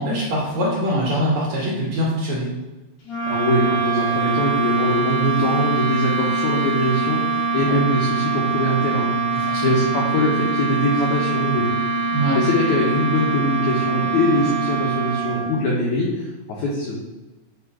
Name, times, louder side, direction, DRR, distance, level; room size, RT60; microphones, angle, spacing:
voice 1, 0.0-2.5 7.7-7.8 9.3-9.8 12.1-12.4, equal, 60° right, -5 dB, 2.1 m, -23 dB
sound 1, 3.0-15.8, right 4 dB, 65° left, 3.8 m, -23 dB
voice 2, 3.3-11.9 12.3-17.0, left 1 dB, 80° left, -3 dB, 1.7 m, -22 dB
8.3 x 3.0 x 4.7 m, 1.1 s
omnidirectional pair, 4.6 m